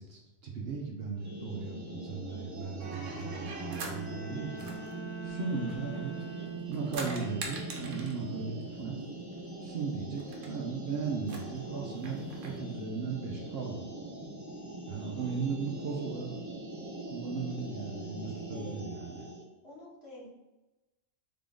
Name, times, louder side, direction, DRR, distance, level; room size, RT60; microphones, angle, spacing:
voice 1, 0.0-4.9 5.2-6.2 6.7-9.0 9.6-13.9 14.9-16.3 17.1-19.2, right 5 dB, 60° right, 0 dB, 0.9 m, -37 dB
sound 1, 1.2-19.4, right 2 dB, 20° right, 0.5 m, -42 dB
sound 2, 2.8-4.0 4.6-6.2 6.6-8.2 9.4-9.5 9.7-9.8 10.2-10.5 11.2-12.6, right 3 dB, 80° right, 1.1 m, -43 dB
Bowed string instrument, 3.6-7.0, left 1 dB, 85° left, 1.7 m, -47 dB
voice 2, 18.3-18.8 19.6-20.3, left 2 dB, 55° left, -8 dB, 2.0 m, -49 dB
3.8 x 3.6 x 3.7 m, 1.0 s
omnidirectional pair, 1.3 m